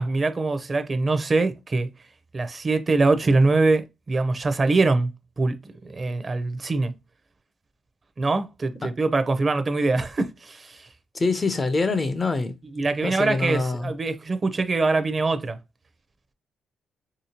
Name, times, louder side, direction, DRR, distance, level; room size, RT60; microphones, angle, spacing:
voice 1, 0.0-1.9 2.3-5.1 5.4-5.6 5.8-6.9 8.2-10.9 12.7-15.6, right 3 dB, 35° right, 0.6 m, -23 dB
voice 2, 11.1-12.5 13.0-13.9, left 3 dB, 30° left, 0.5 m, -25 dB
3.0 x 2.8 x 2.9 m
cardioid pair, 90°, 0 cm